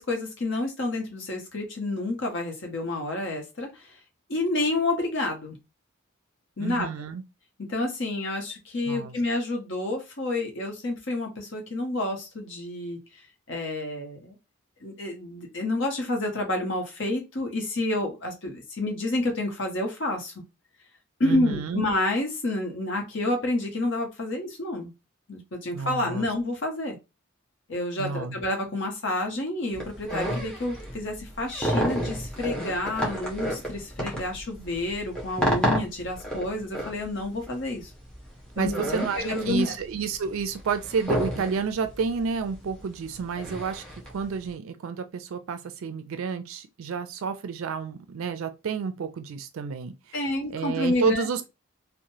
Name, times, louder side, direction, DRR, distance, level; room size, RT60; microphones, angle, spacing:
voice 1, 0.0-3.9 4.3-5.6 6.6-6.9 7.7-13.0 13.5-14.3 14.8-20.3 21.2-24.9 25.3-27.0 27.7-37.9 38.6-38.9 39.1-39.7 50.1-51.4, left 2 dB, 55° left, 0.9 m, -29 dB
voice 2, 6.6-7.2 8.9-9.2 21.2-21.8 25.7-26.3 28.0-28.4 38.6-43.8 44.1-50.2 50.5-51.4, right 5 dB, 70° right, 0.4 m, -30 dB
sound 1, 29.7-44.5, equal, 5° left, 0.6 m, -31 dB
2.9 x 2.1 x 2.6 m
head